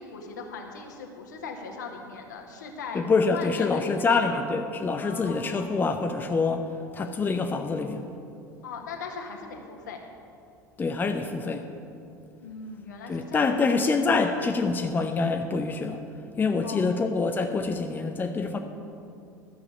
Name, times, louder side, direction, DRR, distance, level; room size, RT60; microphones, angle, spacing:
voice 1, 0.0-4.4 5.0-5.9 8.6-10.0 12.4-13.8 16.6-17.1, left 4 dB, 65° left, 2 dB, 1.5 m, -39 dB
voice 2, 2.9-6.7 6.9-8.0 10.8-11.7 13.1-16.0 16.4-18.6, left 4 dB, 20° left, 5 dB, 0.7 m, -26 dB
13.0 x 6.6 x 8.4 m, 2.5 s
figure-of-eight pair, 75°, 10 cm